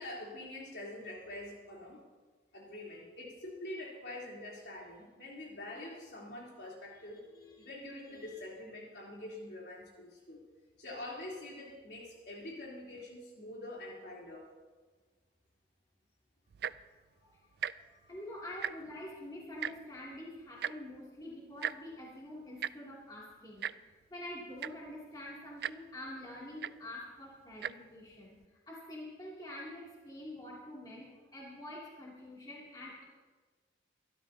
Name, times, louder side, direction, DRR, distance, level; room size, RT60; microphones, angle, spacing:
voice 1, 0.0-2.0 2.5-7.3 7.6-10.4 10.8-14.5 17.9-18.2, left 1 dB, 65° left, -3 dB, 3.4 m, -45 dB
voice 2, 6.9-7.7 8.1-8.3 17.2-17.4 18.1-23.7 24.1-28.4 28.7-33.0, left 1 dB, 20° left, -5 dB, 2.6 m, -46 dB
Tick-tock, 16.5-16.9 17.5-17.7 18.0-18.2 18.5-19.0 19.6-19.7 20.6-20.7 21.6-21.7 22.6-22.7 23.6-23.7 24.3-24.4 24.6-24.9 25.6-25.7 26.6-26.7 27.5-27.7 28.4-28.5, right 9 dB, 60° right, 0.3 m, -36 dB
23.5 x 12.5 x 2.8 m, 1.4 s
head